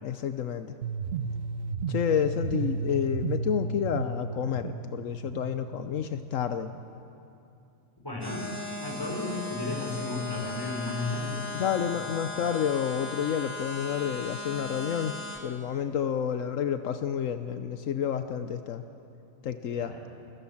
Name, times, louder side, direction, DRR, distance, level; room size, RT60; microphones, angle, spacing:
voice 1, 0.0-0.7 1.9-6.7 11.5-18.8 19.4-19.9, left 8 dB, 80° left, 9 dB, 1.2 m, -30 dB
sound 1, 0.8-6.8, right 4 dB, 75° right, 1.3 m, -34 dB
voice 2, 8.0-8.5 8.8-11.4 19.8-20.0, left 2 dB, 15° left, -1 dB, 5.4 m, -33 dB
sound 2, 8.2-15.4, left 3 dB, 10° right, 3.1 m, -37 dB
29.5 x 23.0 x 7.2 m, 2.8 s
omnidirectional pair, 1.3 m